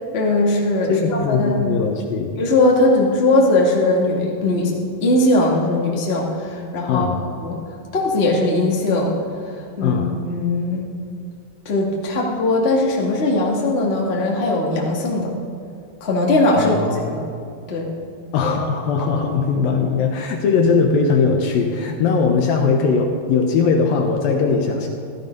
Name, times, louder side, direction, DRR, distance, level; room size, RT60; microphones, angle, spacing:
voice 1, 0.1-1.9 2.4-4.7 5.0-7.1 7.4-7.6 7.9-9.2 9.4-10.0 10.3-10.8 11.6-15.3 16.0-17.2 17.7-17.9, left 2 dB, 25° left, -3 dB, 1.5 m, -19 dB
voice 2, 0.9-2.3 6.9-7.2 9.8-10.1 16.6-17.0 18.3-24.9, left 5 dB, 70° left, 3 dB, 2.5 m, -19 dB
14.5 x 14.0 x 5.4 m, 2.4 s
omnidirectional pair, 4.7 m